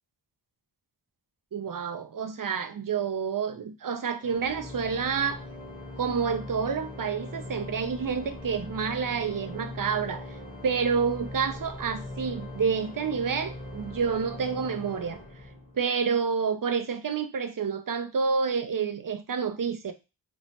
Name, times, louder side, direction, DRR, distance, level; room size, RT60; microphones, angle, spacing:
voice 1, 1.5-5.4 6.0-10.4 10.6-15.2 15.7-19.9, right 6 dB, 50° right, 0.5 m, -29 dB
Organ, 4.2-16.0, left 1 dB, 20° left, 1.0 m, -40 dB
3.1 x 2.0 x 2.8 m
wide cardioid pair, 45°, 43 cm